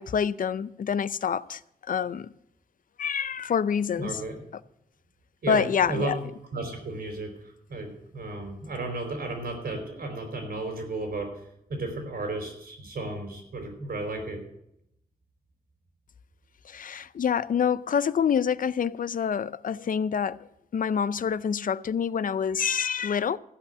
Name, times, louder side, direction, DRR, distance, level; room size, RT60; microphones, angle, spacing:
voice 1, 0.0-1.6 1.9-2.3 3.0-4.2 5.5-6.2 16.6-20.5 20.7-23.4, left 7 dB, 60° left, 0.5 m, -27 dB
voice 2, 4.0-4.3 5.4-6.1 6.5-11.3 11.7-14.4, right 2 dB, 80° right, 4.3 m, -34 dB
14.5 x 5.5 x 9.2 m
cardioid pair, 55°, 16 cm